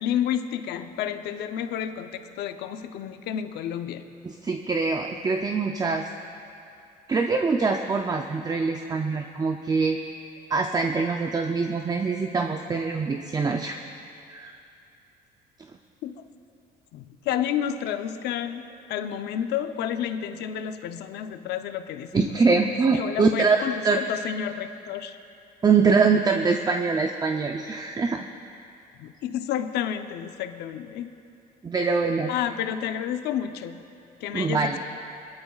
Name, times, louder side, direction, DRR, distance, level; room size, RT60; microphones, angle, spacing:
voice 1, 0.0-4.1 16.0-16.1 16.9-22.7 22.9-25.2 29.0-31.1 32.3-33.8 34.2-34.8, left 9 dB, 80° left, 8 dB, 0.7 m, -30 dB
voice 2, 4.2-6.0 7.1-10.0 10.5-13.8 14.3-14.5 22.1-24.0 25.6-28.3 31.6-32.3 34.3-34.8, right 4 dB, 25° right, 4 dB, 0.6 m, -24 dB
21.5 x 13.0 x 2.4 m, 2.5 s
cardioid pair, 110°, 17 cm